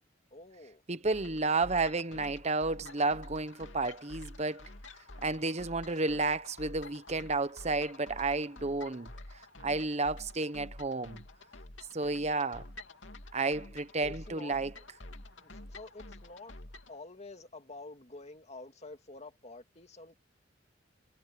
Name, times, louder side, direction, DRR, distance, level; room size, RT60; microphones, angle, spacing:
voice 1, 0.3-0.8 14.0-14.6 15.0-15.1 15.4-16.5 16.9-20.2, left 2 dB, 35° left, 2.4 m, -48 dB
voice 2, 0.9-4.6 5.2-9.1 9.6-11.2 11.9-12.6 13.3-14.7, right 3 dB, 35° right, 1.1 m, -31 dB
sound 1, 1.1-17.0, left 2 dB, 80° left, 2.9 m, -49 dB
head